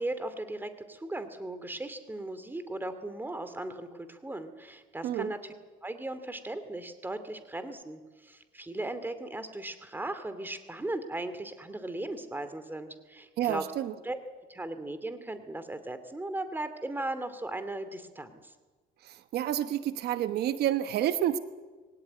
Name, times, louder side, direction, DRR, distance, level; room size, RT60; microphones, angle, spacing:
voice 1, 0.0-5.4 5.8-13.6 14.0-14.2 14.5-18.5, right 2 dB, 10° right, 11 dB, 2.6 m, -37 dB
voice 2, 5.0-5.3 13.4-13.9 19.0-21.4, right 11 dB, 70° right, 11 dB, 1.1 m, -29 dB
22.5 x 18.0 x 9.6 m, 1.3 s
cardioid pair, 110°, 17 cm